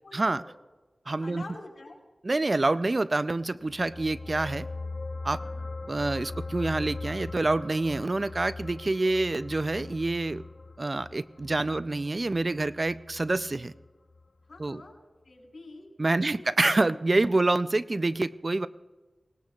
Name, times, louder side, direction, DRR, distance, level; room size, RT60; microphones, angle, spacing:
voice 1, 0.0-0.5 1.2-2.0 5.3-5.7 14.5-14.9 15.2-15.9 16.2-16.5 16.9-17.0 17.2-17.4, left 2 dB, 75° left, 0 dB, 4.1 m, -47 dB
voice 2, 1.1-1.4 2.2-4.7 5.2-5.4 5.9-10.5 10.8-13.7 14.6-14.8 16.0-18.7, right 2 dB, 45° right, 14 dB, 0.4 m, -27 dB
sound 1, 3.6-14.2 14.5-14.7, left 3 dB, 50° left, 0.6 m, -40 dB
24.0 x 19.5 x 2.4 m, 1.2 s
wide cardioid pair, 65°, 0 cm